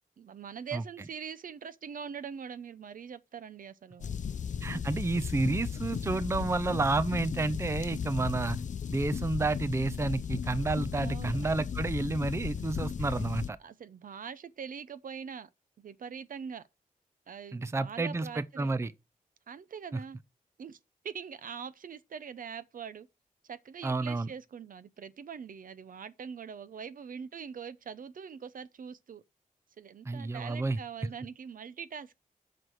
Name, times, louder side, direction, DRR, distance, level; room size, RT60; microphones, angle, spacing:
voice 1, 0.2-4.1 4.7-4.8 10.9-11.7 13.0-13.1 13.6-15.5 15.8-16.6 17.3-18.7 19.5-20.2 20.6-20.8 21.0-23.1 23.4-29.2 29.8-32.1, right 7 dB, 70° right, 0.6 m, -43 dB
sound 1, 4.0-13.5, left 7 dB, 60° left, 0.6 m, -35 dB
voice 2, 4.6-8.6 8.9-13.6 17.5-18.9 23.8-24.3 30.1-30.8, right 3 dB, 20° right, 0.5 m, -30 dB
7.9 x 6.0 x 6.3 m
wide cardioid pair, 150°, 15 cm